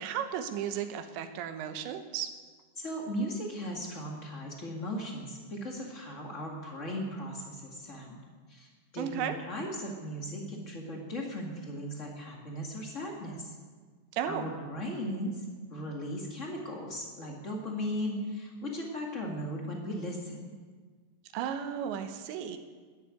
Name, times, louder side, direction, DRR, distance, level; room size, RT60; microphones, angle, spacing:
voice 1, 0.0-2.3 9.0-9.4 14.1-14.5 21.3-22.6, right 9 dB, 90° right, 8 dB, 3.3 m, -34 dB
voice 2, 2.8-8.2 8.5-13.5 14.2-15.4 15.7-20.5, equal, 70° left, -1 dB, 0.7 m, -37 dB
12.5 x 11.0 x 9.4 m, 1.5 s
omnidirectional pair, 5.0 m